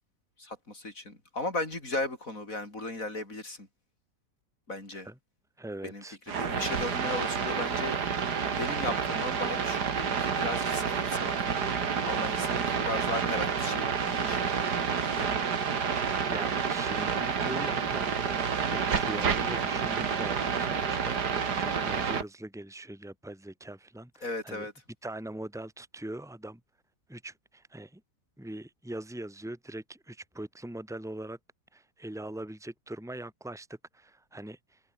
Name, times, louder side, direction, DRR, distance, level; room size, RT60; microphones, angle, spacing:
voice 1, 0.4-3.7 4.7-5.1 5.8-8.0 8.6-11.6 12.0-14.4 15.0-15.3 24.2-24.7, left 2 dB, 50° left, 6.2 m, -36 dB
voice 2, 5.6-6.2 16.3-21.2 21.6-24.7 25.0-26.6 27.1-28.0 28.4-31.4 31.7-33.7 33.9-34.8, right 1 dB, ahead, 2.9 m, -41 dB
sound 1, 6.3-22.2, right 6 dB, 70° right, 2.5 m, -29 dB
omnidirectional pair, 1.9 m